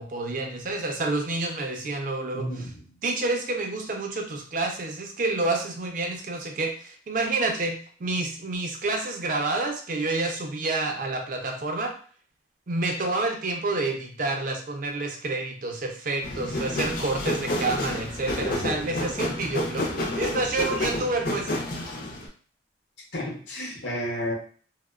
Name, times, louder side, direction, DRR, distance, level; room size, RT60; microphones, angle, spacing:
voice 1, 0.0-2.7 3.0-11.9 12.7-21.5, right 2 dB, 50° right, 3 dB, 0.5 m, -29 dB
voice 2, 2.3-2.8 23.1-24.3, equal, 90° left, 0 dB, 0.8 m, -31 dB
sound 1, 16.2-22.3, left 1 dB, 55° left, 0.5 m, -30 dB
2.8 x 2.0 x 2.3 m, 0.43 s
head